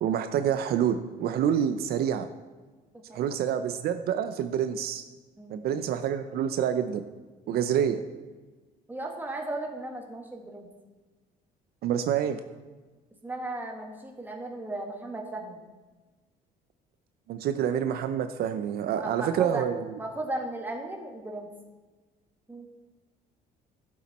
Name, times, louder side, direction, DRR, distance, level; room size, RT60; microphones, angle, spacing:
voice 1, 0.0-2.3 3.1-5.0 5.5-7.0 7.5-8.0 11.8-12.4 17.3-19.8, right 9 dB, 65° right, 9 dB, 0.6 m, -27 dB
voice 2, 5.4-5.7 8.9-10.7 13.2-15.6 19.0-19.7 20.0-21.5 22.5-22.7, right 2 dB, 10° right, 1 dB, 1.7 m, -36 dB
12.0 x 7.4 x 4.2 m, 1.3 s
cardioid pair, 110°, 17 cm